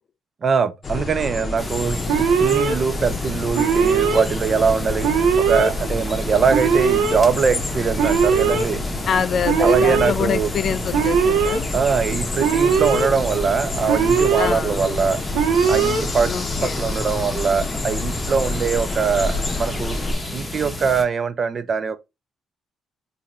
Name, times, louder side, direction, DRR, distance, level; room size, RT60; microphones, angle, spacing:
voice 1, 0.4-5.1 5.4-8.8 9.6-10.5 11.7-15.2 15.7-20.0 20.3-22.0, right 5 dB, 45° right, 0.5 m, -22 dB
sound 1, 0.8-20.1, left 2 dB, 35° left, 0.7 m, -29 dB
sound 2, 1.6-21.0, left 1 dB, 15° left, 0.9 m, -32 dB
Alarm, 2.1-2.7 3.5-4.2 5.0-5.7 6.5-7.2 8.0-8.6 9.4-10.1 10.9-11.6 12.4-13.1 13.9-14.5 15.3-16.0, right 6 dB, 90° right, 0.6 m, -19 dB
voice 2, 9.1-11.7 14.4-14.9 16.2-16.8, left 7 dB, 55° left, 0.3 m, -25 dB
3.8 x 2.6 x 2.9 m
cardioid pair, 90°, 0 cm